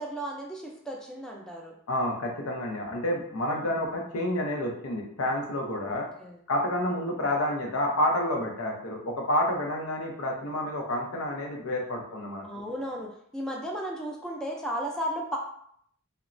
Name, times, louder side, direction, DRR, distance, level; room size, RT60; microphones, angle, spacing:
voice 1, 0.0-1.8 3.4-3.7 5.8-6.4 12.4-15.4, equal, 5° left, -1 dB, 0.4 m, -35 dB
voice 2, 1.9-6.1 6.5-12.4, left 1 dB, 85° left, 1 dB, 0.6 m, -29 dB
3.0 x 2.1 x 2.4 m, 0.66 s
head